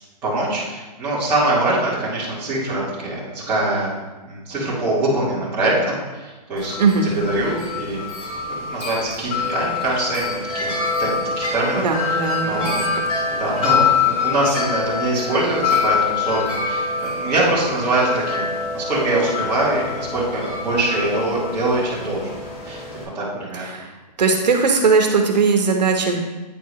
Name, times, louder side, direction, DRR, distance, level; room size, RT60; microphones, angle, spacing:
voice 1, 0.2-3.9 4.2-6.7 7.0-8.0 8.6-12.2 12.4-12.7 13.3-16.8 17.2-22.3 22.6-22.8 23.1-23.8, right 2 dB, 10° right, -11 dB, 1.7 m, -23 dB
Wind chime, 6.6-23.0, left 5 dB, 55° left, 2.3 m, -25 dB
voice 2, 11.8-12.7 23.6-23.9 24.2-26.2, right 4 dB, 80° right, 2 dB, 1.1 m, -18 dB
9.2 x 4.5 x 3.1 m, 1.2 s
hypercardioid pair, 175°, 21 cm